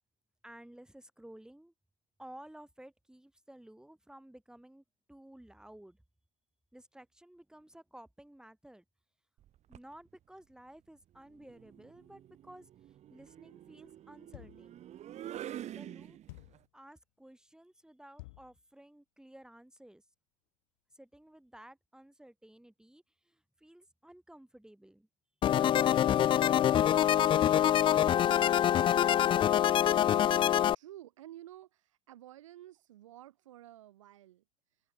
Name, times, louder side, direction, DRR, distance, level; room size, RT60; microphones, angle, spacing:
voice 1, 0.4-1.7 2.2-6.0 6.7-8.8 9.7-14.8 15.7-16.2 16.7-20.1 20.9-25.1 25.6-28.8, right 1 dB, 5° right, 6.3 m, -54 dB
sound 1, 9.4-9.9 11.3-16.6, right 12 dB, 45° right, 2.8 m, -47 dB
sound 2, 14.3-14.8 16.3-16.7 18.2-18.6, left 25 dB, 70° left, 1.6 m, -51 dB
sound 3, 25.4-30.7, left 10 dB, 30° left, 0.4 m, -25 dB
voice 2, 30.2-34.4, right 13 dB, 80° right, 6.3 m, -52 dB
open air
hypercardioid pair, 80°, 16 cm